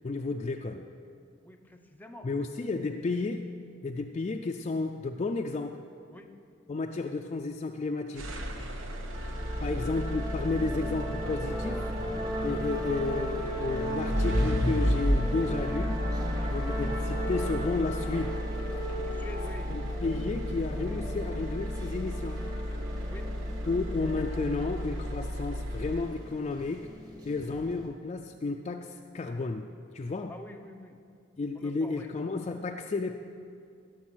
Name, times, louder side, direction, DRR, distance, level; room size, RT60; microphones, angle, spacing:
voice 1, 0.0-0.9 2.2-3.5 3.8-5.8 6.7-8.3 9.6-11.9 12.4-16.0 16.5-18.4 19.7-22.4 23.7-26.9 27.2-29.7 29.9-30.3 31.4-33.2, left 3 dB, 30° left, 4 dB, 0.4 m, -32 dB
voice 2, 1.4-2.3 3.8-3.9 6.1-6.3 8.6-8.9 19.0-19.8 23.1-23.3 27.3-27.4 30.3-31.0 31.5-32.1, left 1 dB, 10° left, 6 dB, 0.7 m, -47 dB
sound 1, 8.2-26.4, equal, 75° right, 1.1 m, -33 dB
sound 2, 9.1-27.9, equal, 20° right, 1.1 m, -37 dB
15.0 x 6.5 x 6.2 m, 2.3 s
head